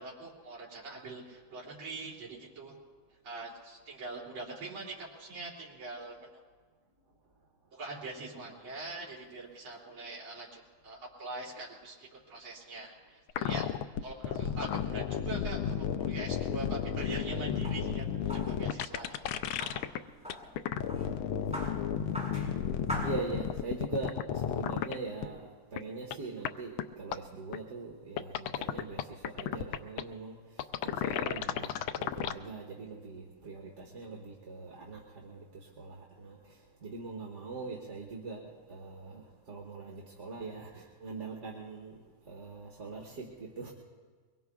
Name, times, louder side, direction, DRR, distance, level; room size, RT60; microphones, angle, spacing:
voice 1, 0.0-2.7 3.2-6.3 7.7-13.7 14.0-20.0, right 3 dB, 70° right, 3.7 m, -43 dB
sound 1, 13.3-20.0 20.3-25.0 25.2-25.3 25.8-25.9 26.1-26.2 26.4-26.5 26.8-26.9 27.1-27.2 27.5-27.6 28.2-30.0 30.6-32.3, left 9 dB, 75° left, 1.3 m, -33 dB
sound 2, 16.3-23.8, equal, 5° right, 5.3 m, -44 dB
voice 2, 23.0-30.4 30.8-35.5 35.8-36.4 36.8-42.0 42.3-43.7, right 3 dB, 35° right, 1.6 m, -42 dB
23.5 x 22.5 x 2.4 m
omnidirectional pair, 2.4 m